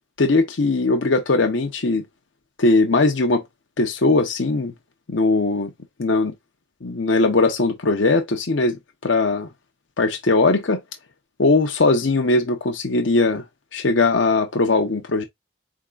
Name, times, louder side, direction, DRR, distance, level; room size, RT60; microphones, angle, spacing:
voice 1, 0.2-2.0 2.6-3.4 3.8-4.7 5.1-5.7 6.0-6.3 6.8-9.5 10.0-10.8 11.4-13.4 13.7-15.2, left 3 dB, 75° left, 0.8 m, -19 dB
4.6 x 3.6 x 2.4 m
head